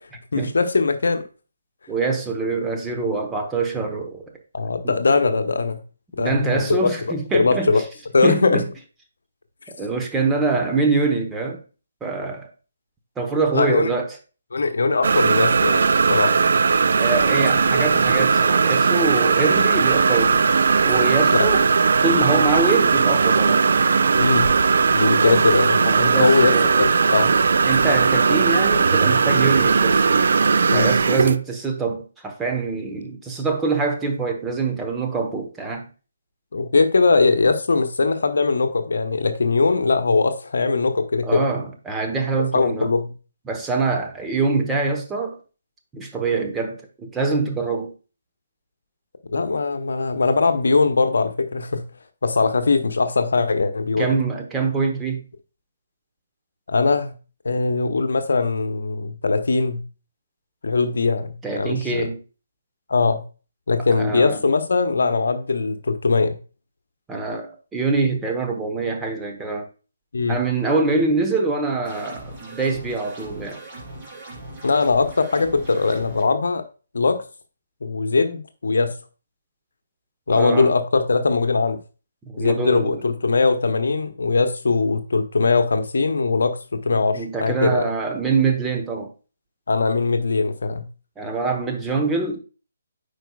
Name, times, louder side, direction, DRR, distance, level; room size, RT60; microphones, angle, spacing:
voice 1, 0.3-1.2 4.5-5.8 6.2-6.9 7.3-7.8 8.1-8.6 13.5-13.9 14.5-15.8 16.1-16.3 21.4-21.5 24.2-24.5 24.9-26.5 26.8-27.3 30.7-30.9 36.5-41.5 42.5-43.1 49.3-51.8 52.2-54.1 56.7-57.1 57.4-59.8 60.6-62.1 62.9-63.2 63.7-66.4 70.1-70.4 74.6-76.6 76.9-77.2 77.8-78.9 80.3-81.8 82.4-87.8 89.7-90.9, left 4 dB, 65° left, 0.9 m, -20 dB
voice 2, 1.9-4.2 4.8-4.9 6.2-7.8 8.2-8.7 9.7-11.6 12.0-12.5 13.2-14.2 17.0-21.7 22.0-23.6 25.2-25.4 25.9-26.8 27.6-30.3 30.7-35.9 41.2-42.9 43.5-45.4 45.9-47.9 54.0-55.2 61.4-62.2 63.9-64.4 67.1-69.7 70.3-73.6 80.3-80.7 82.3-83.0 87.1-89.1 91.2-92.4, right 4 dB, 10° right, 0.9 m, -24 dB
sound 1, 15.0-31.4, right 5 dB, 60° right, 0.4 m, -18 dB
sound 2, 71.8-76.2, right 2 dB, 30° right, 3.2 m, -39 dB
9.1 x 4.8 x 2.3 m
figure-of-eight pair, 140°, 0 cm